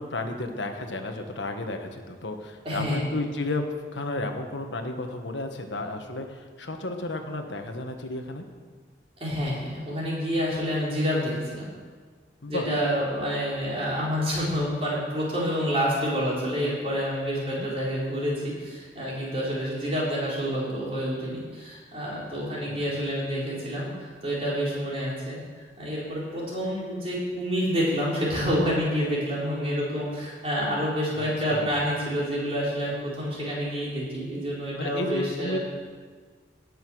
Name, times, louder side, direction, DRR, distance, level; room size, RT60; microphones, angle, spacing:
voice 1, 0.0-3.6 3.9-8.4 12.4-12.7 17.4-17.7 22.4-22.9 31.2-31.8 34.8-35.6, left 2 dB, 90° left, 5 dB, 1.4 m, -33 dB
voice 2, 2.6-3.0 9.2-11.7 12.5-25.4 25.8-35.6, equal, 35° right, -6 dB, 4.2 m, -28 dB
18.0 x 6.8 x 6.3 m, 1.5 s
head